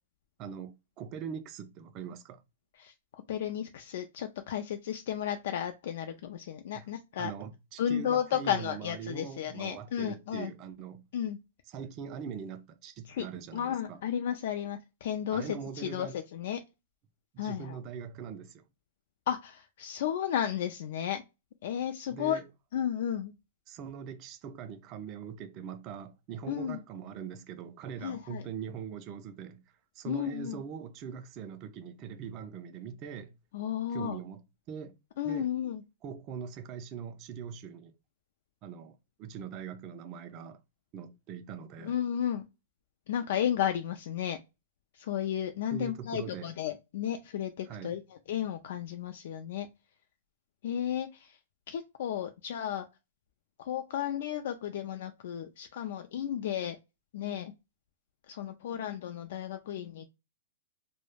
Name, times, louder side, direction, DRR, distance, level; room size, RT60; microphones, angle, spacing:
voice 1, 0.4-2.4 6.7-6.9 7.2-11.0 11.7-14.0 15.3-16.1 17.3-18.6 22.1-22.4 23.7-29.6 29.9-33.3 33.9-34.4 34.7-34.9 35.2-35.5 36.0-37.9 38.6-40.6 40.9-42.0 45.7-46.5 47.7-48.0, right 7 dB, 30° right, 0.4 m, -42 dB
voice 2, 3.3-7.3 7.8-10.5 11.1-11.4 13.1-13.3 13.5-16.6 17.4-17.8 19.3-21.2 21.6-22.4 22.7-23.3 26.5-26.8 28.0-28.5 30.1-30.6 33.5-34.2 35.2-35.8 41.8-42.4 43.1-44.4 44.9-49.7 50.6-51.4 51.7-52.9 53.6-56.8 57.1-57.5 58.3-60.1, left 10 dB, 55° left, 0.3 m, -33 dB
2.3 x 2.0 x 3.2 m
hypercardioid pair, 160°, 0 cm